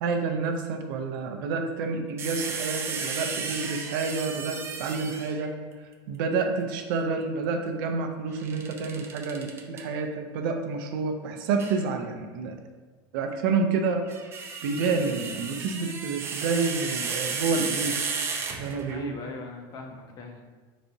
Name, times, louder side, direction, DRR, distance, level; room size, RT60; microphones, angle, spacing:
voice 1, 0.0-5.6 6.1-12.6 13.1-14.1 14.6-18.0 18.6-19.1, right 4 dB, 70° right, 5 dB, 0.6 m, -29 dB
sound 1, 2.2-5.5 8.4-9.8 11.6-11.8 13.9-19.0, right 5 dB, 20° right, 0.4 m, -34 dB
voice 2, 18.9-20.5, left 3 dB, 35° left, 3 dB, 0.6 m, -40 dB
4.6 x 4.1 x 2.7 m, 1.4 s
supercardioid pair, 160°, 11 cm